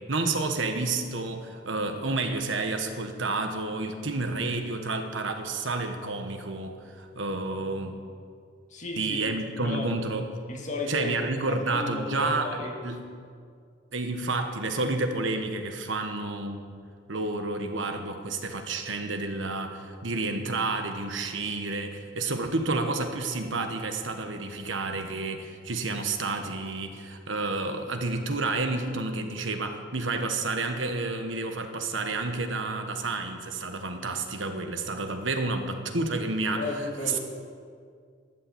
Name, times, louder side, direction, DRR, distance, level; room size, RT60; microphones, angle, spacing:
voice 1, 0.1-8.0 9.0-10.3 10.9-12.6 12.8-13.0 13.9-16.6 17.1-36.7, right 3 dB, 80° right, 6 dB, 1.3 m, -30 dB
voice 2, 8.7-9.2 9.5-9.9 10.5-12.7 36.6-37.2, left 2 dB, 40° left, 0 dB, 2.1 m, -34 dB
12.5 x 8.8 x 7.9 m, 2.2 s
head